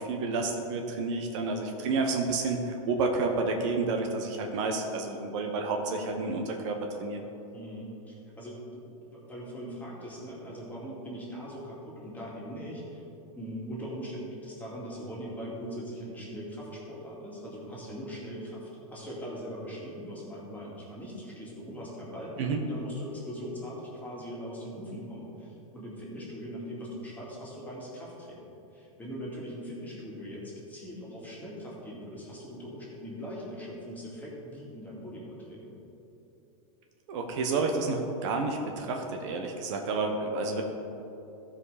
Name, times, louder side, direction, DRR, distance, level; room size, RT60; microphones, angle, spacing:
voice 1, 0.0-7.2 22.4-22.6 37.1-40.6, right 3 dB, 55° right, 3 dB, 1.1 m, -30 dB
voice 2, 7.5-13.0 13.3-35.7, equal, 10° left, -5 dB, 2.3 m, -41 dB
14.5 x 5.1 x 4.9 m, 3.0 s
supercardioid pair, 145°, 19 cm